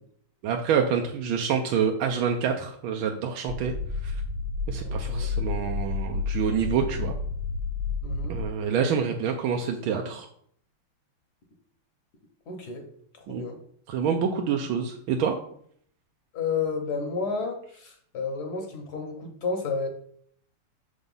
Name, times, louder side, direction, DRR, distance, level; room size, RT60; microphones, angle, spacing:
voice 1, 0.4-3.7 4.0-4.2 4.7-7.1 8.3-10.3 13.3-13.4 13.9-15.4, right 7 dB, 75° right, 3 dB, 1.4 m, -27 dB
sound 1, 3.5-8.4, left 4 dB, 60° right, 1.5 m, -30 dB
voice 2, 4.8-5.3 8.0-8.3 8.6-8.9 12.5-12.8 13.1-13.6 16.3-19.9, left 4 dB, 55° left, 4 dB, 1.3 m, -31 dB
6.7 x 4.0 x 5.4 m, 0.64 s
omnidirectional pair, 2.4 m